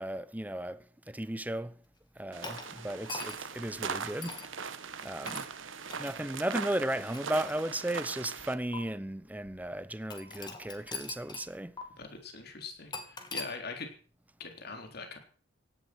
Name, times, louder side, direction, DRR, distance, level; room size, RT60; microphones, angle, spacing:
voice 1, 0.0-1.8 2.2-4.5 5.0-5.5 6.0-11.8, right 1 dB, 10° right, 0.9 m, -35 dB
sound 1, 2.3-8.5, right 5 dB, 85° right, 1.5 m, -40 dB
sound 2, 2.4-3.6 4.2-4.5 5.3-5.5 5.9-6.1 6.8-8.0 8.7-8.8 10.1-11.5 11.8-11.9 12.9-13.5, left 4 dB, 25° left, 2.7 m, -42 dB
voice 2, 12.0-13.9 14.4-15.2, left 4 dB, 55° left, 3.7 m, -42 dB
17.5 x 11.5 x 6.2 m
head